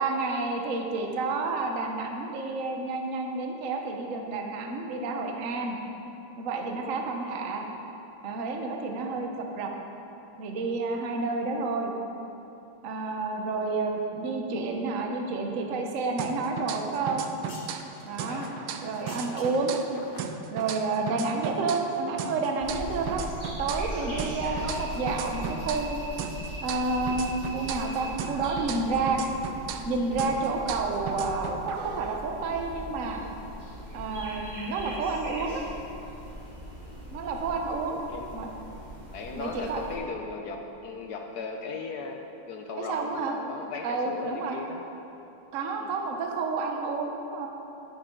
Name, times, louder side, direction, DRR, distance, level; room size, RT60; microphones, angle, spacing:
voice 1, 0.0-5.8 6.3-7.7 8.2-9.7 10.4-11.9 12.8-17.2 18.0-18.5 18.8-19.8 20.5-23.2 23.6-26.0 26.6-29.2 29.9-33.2 33.9-35.6 37.1-38.0 38.3-38.5 39.3-39.8 42.9-43.3 43.8-44.6 45.5-47.5, right 3 dB, 50° right, 2 dB, 1.0 m, -30 dB
sound 1, 16.2-17.9 18.2-21.9 22.2-25.9 26.2-29.9 30.2-32.2, right 8 dB, 75° right, 1.3 m, -37 dB
sound 2, 17.1-21.8 22.0-22.1 22.6-23.3 23.7-23.9 24.2-24.4 24.7-24.8, left 2 dB, 35° left, 0.8 m, -50 dB
sound 3, 22.6-40.0, equal, 20° right, 1.8 m, -40 dB
voice 2, 39.1-44.8 45.8-46.0, left 4 dB, 75° left, 3 dB, 0.9 m, -37 dB
11.0 x 10.5 x 3.8 m, 2.9 s
omnidirectional pair, 2.4 m